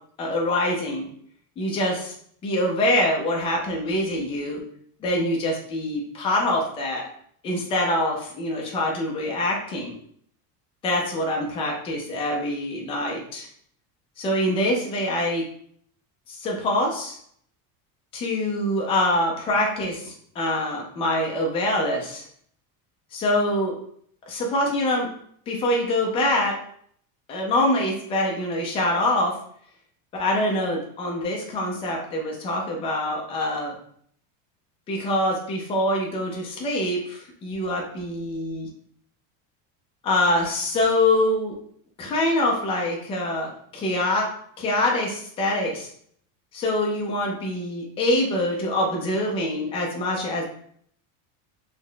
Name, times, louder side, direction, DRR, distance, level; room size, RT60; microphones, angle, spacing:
voice 1, 0.2-1.1 1.6-2.1 2.4-4.6 5.0-7.1 7.4-9.9 10.8-13.5 14.2-15.5 16.3-17.2 18.1-22.2 23.1-23.7 24.3-25.1 25.5-26.6 27.3-29.4 30.1-33.7 34.9-38.7 40.0-41.6 42.0-44.3 44.6-45.9 46.5-50.4, left 1 dB, 15° left, -1 dB, 0.3 m, -24 dB
3.9 x 2.0 x 3.2 m, 0.64 s
cardioid pair, 165°, 41 cm